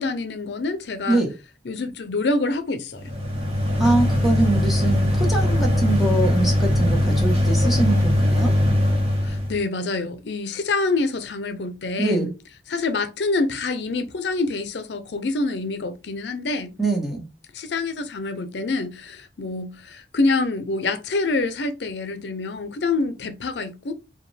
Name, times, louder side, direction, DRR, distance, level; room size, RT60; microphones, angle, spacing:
voice 1, 0.0-1.2 1.7-3.0 9.2-12.3 12.7-16.7 17.5-23.9, left 3 dB, 75° left, 0.5 m, -26 dB
sound 1, 3.0-9.6, left 1 dB, 30° right, 1.3 m, -20 dB
voice 2, 3.8-8.5 12.0-12.3 16.8-17.3, right 2 dB, ahead, 1.0 m, -23 dB
4.8 x 2.2 x 3.3 m
head